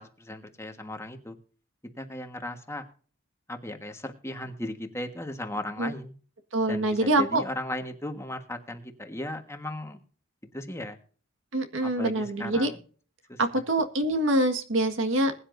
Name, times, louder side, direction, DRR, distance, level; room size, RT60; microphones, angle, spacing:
voice 1, 0.0-1.4 2.0-2.8 3.5-6.1 6.7-10.0 10.5-11.0 11.8-12.8 13.3-13.4, left 1 dB, 15° left, 5 dB, 1.5 m, -36 dB
voice 2, 6.5-7.4 11.5-12.7 13.4-15.4, right 1 dB, 60° right, 6 dB, 1.7 m, -25 dB
21.5 x 9.9 x 2.7 m, 0.41 s
head